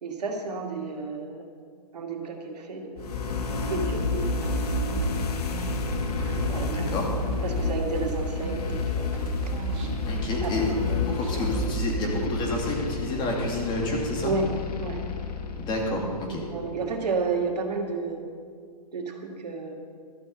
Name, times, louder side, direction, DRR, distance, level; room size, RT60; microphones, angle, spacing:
voice 1, 0.0-1.4 1.9-3.2 3.7-4.3 6.5-6.9 7.4-9.1 9.4-9.5 10.4-11.0 11.3-11.5 14.2-14.5 14.8-15.0 16.5-18.3 18.9-19.7, right 4 dB, 75° right, 2 dB, 2.3 m, -31 dB
sound 1, 3.0-16.8, left 3 dB, 70° left, 1.4 m, -30 dB
sound 2, 4.4-8.8 9.1-11.5, right 2 dB, 50° right, 2.5 m, -39 dB
voice 2, 6.7-7.1 10.1-10.8 11.0-14.3 15.6-16.4, left 1 dB, 20° left, 0 dB, 2.3 m, -29 dB
12.5 x 6.8 x 7.9 m, 2.1 s
hypercardioid pair, 145°, 21 cm